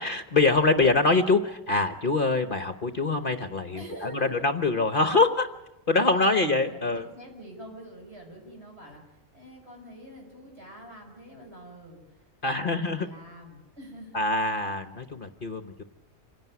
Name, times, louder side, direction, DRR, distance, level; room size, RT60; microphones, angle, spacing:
voice 1, 0.0-5.5 5.9-7.0 12.4-13.1 14.1-15.8, left 3 dB, 45° left, 9 dB, 1.0 m, -24 dB
voice 2, 3.7-4.4 6.1-14.3, right 1 dB, 55° right, 0 dB, 6.4 m, -46 dB
26.5 x 17.0 x 9.3 m, 1.0 s
omnidirectional pair, 1.4 m